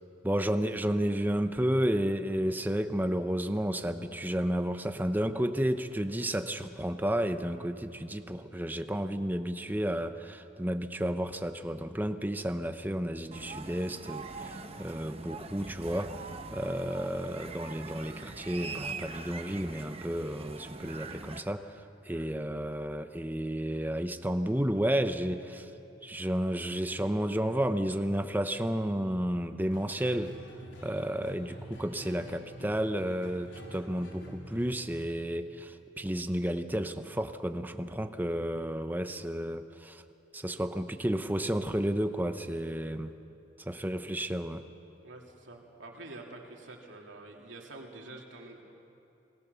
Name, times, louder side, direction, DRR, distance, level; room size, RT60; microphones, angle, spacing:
voice 1, 0.2-16.2 16.5-25.7 26.0-30.3 30.8-40.0 40.3-43.1 43.6-44.6, equal, 10° right, 9 dB, 0.8 m, -32 dB
sound 1, 13.3-21.4, right 3 dB, 30° right, 1.0 m, -42 dB
sound 2, 29.6-34.7, equal, 85° left, 4.0 m, -47 dB
voice 2, 45.0-48.6, right 2 dB, 90° right, 0 dB, 2.9 m, -47 dB
28.0 x 19.5 x 7.0 m, 2.8 s
head